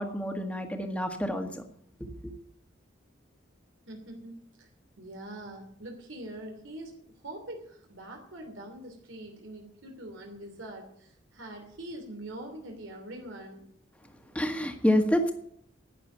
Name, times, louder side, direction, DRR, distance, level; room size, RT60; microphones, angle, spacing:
voice 1, 0.0-1.6 2.0-2.3 14.3-15.3, equal, 5° left, 5 dB, 1.6 m, -28 dB
voice 2, 3.9-4.7 5.0-7.0 7.2-13.6, right 1 dB, 90° right, 2 dB, 3.1 m, -43 dB
11.5 x 10.0 x 9.6 m, 0.68 s
head